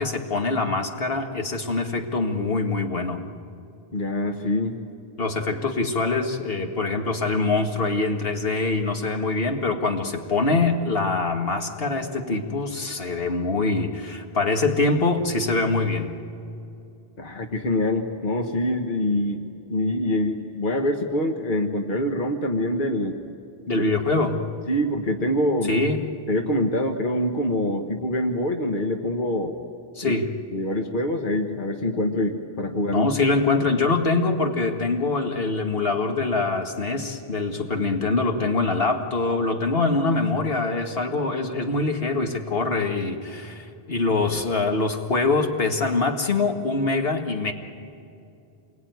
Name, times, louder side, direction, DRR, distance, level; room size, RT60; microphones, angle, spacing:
voice 1, 0.0-3.2 5.2-16.1 23.7-24.5 25.6-26.0 30.0-30.3 32.9-47.5, left 3 dB, 70° left, 4 dB, 1.9 m, -24 dB
voice 2, 3.9-4.8 17.2-23.2 23.7-23.8 24.7-25.8 26.3-29.5 30.0-30.1 30.5-33.1, left 1 dB, 55° left, 4 dB, 1.5 m, -25 dB
27.5 x 22.5 x 9.4 m, 2.7 s
omnidirectional pair, 1.0 m